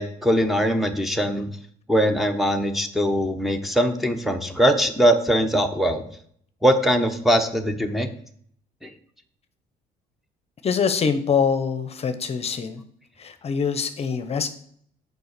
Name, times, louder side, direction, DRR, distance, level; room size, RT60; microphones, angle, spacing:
voice 1, 0.0-1.5 1.9-6.0 6.6-8.1 8.8-8.9, equal, ahead, 3 dB, 0.8 m, -21 dB
voice 2, 10.6-12.8 13.2-14.5, left 6 dB, 40° left, 10 dB, 0.7 m, -24 dB
6.8 x 4.8 x 6.6 m, 0.62 s
cardioid pair, 110°, 17 cm